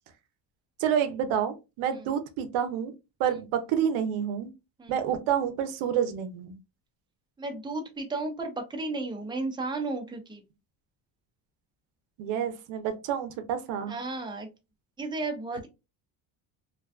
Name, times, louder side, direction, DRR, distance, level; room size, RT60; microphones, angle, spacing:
voice 1, 0.8-2.9 3.2-4.5 4.9-6.5 12.2-13.9, right 9 dB, 80° right, 0.6 m, -28 dB
voice 2, 7.4-10.4 13.9-14.5 15.0-15.7, right 3 dB, 10° right, 0.6 m, -34 dB
2.6 x 2.2 x 2.2 m
cardioid pair, 100°, 48 cm